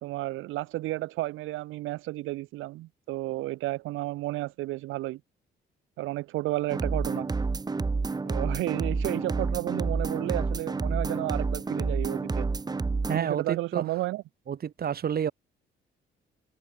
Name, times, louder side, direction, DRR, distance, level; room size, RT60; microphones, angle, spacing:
voice 1, 0.0-5.2 6.0-7.3 8.2-12.5 13.1-14.2, right 17 dB, 85° right, 0.6 m, -32 dB
sound 1, 6.7-13.2, right 4 dB, 20° right, 0.9 m, -29 dB
voice 2, 13.1-13.8 14.5-15.3, right 8 dB, 50° right, 1.7 m, -29 dB
cardioid pair, 90°, 20 cm